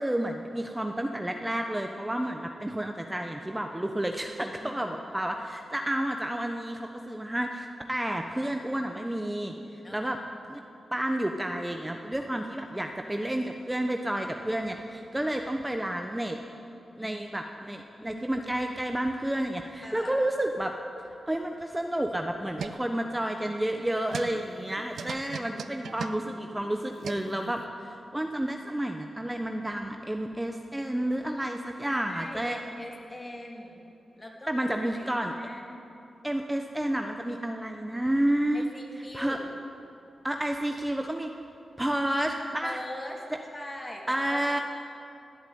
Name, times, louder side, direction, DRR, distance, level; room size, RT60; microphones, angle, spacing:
voice 1, 0.0-9.5 9.9-10.2 10.5-10.6 10.9-16.4 17.0-20.8 21.3-32.6 34.5-35.3 36.2-38.6 39.1-39.4 40.2-41.3 41.8-42.8 44.1-44.6, right 1 dB, 15° right, 4 dB, 1.0 m, -30 dB
voice 2, 4.5-5.2 9.8-10.2 17.0-17.2 18.0-18.2 19.8-20.2 25.0-26.2 31.8-33.8 34.2-34.6 34.9-35.8 38.5-39.5 42.6-43.3 43.5-44.6, left 1 dB, 25° left, 0 dB, 3.3 m, -42 dB
sound 1, 22.1-27.7, right 6 dB, 80° right, 0.5 m, -41 dB
18.5 x 8.3 x 9.4 m, 2.8 s
cardioid pair, 50°, 0 cm